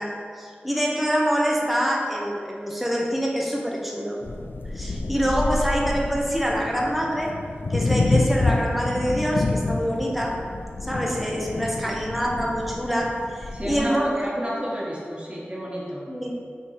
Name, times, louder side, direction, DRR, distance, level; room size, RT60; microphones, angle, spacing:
voice 1, 0.0-4.2 4.7-7.4 7.7-10.4 10.8-14.1 16.1-16.5, equal, ahead, -1 dB, 1.0 m, -25 dB
sound 1, 4.2-13.8, left 2 dB, 60° left, 0.4 m, -28 dB
voice 2, 13.5-16.0, equal, 25° right, -5 dB, 1.3 m, -31 dB
6.2 x 4.5 x 4.1 m, 2.2 s
wide cardioid pair, 75°, 4 cm